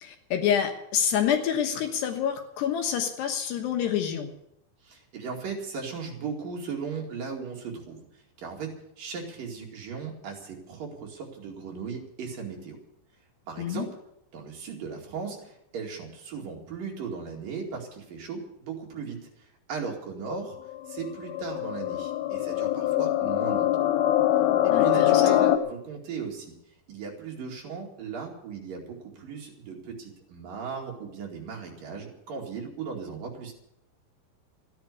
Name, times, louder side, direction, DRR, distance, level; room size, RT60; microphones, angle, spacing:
voice 1, 0.0-4.3 13.6-13.8 24.7-25.2, left 8 dB, 70° left, 5 dB, 3.1 m, -27 dB
voice 2, 4.8-8.0 8.4-12.8 13.5-13.9 14.3-20.6 20.9-23.7 24.6-26.5 26.9-33.5, right 5 dB, 55° right, 0 dB, 3.5 m, -37 dB
sound 1, 20.5-25.6, left 13 dB, 90° left, 3.4 m, -24 dB
14.5 x 10.5 x 8.2 m, 0.77 s
omnidirectional pair, 5.4 m